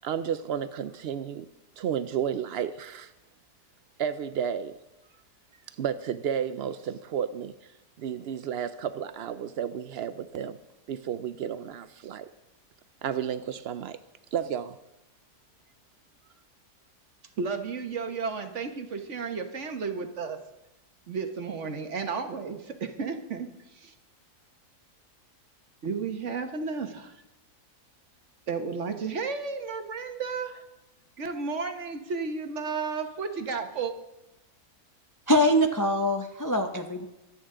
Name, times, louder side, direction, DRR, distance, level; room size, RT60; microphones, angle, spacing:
voice 1, 0.0-1.5 1.8-3.1 4.0-4.7 5.8-7.7 8.0-10.6 10.9-12.3 13.0-14.0 14.3-14.8, right 8 dB, 90° right, 12 dB, 0.5 m, -32 dB
voice 2, 17.4-20.4 21.1-23.9 25.8-27.2 28.5-30.6 31.2-33.9, right 5 dB, 50° right, 6 dB, 1.4 m, -33 dB
voice 3, 35.3-37.0, equal, 25° left, 5 dB, 0.4 m, -23 dB
24.0 x 8.9 x 3.8 m, 0.96 s
omnidirectional pair, 1.7 m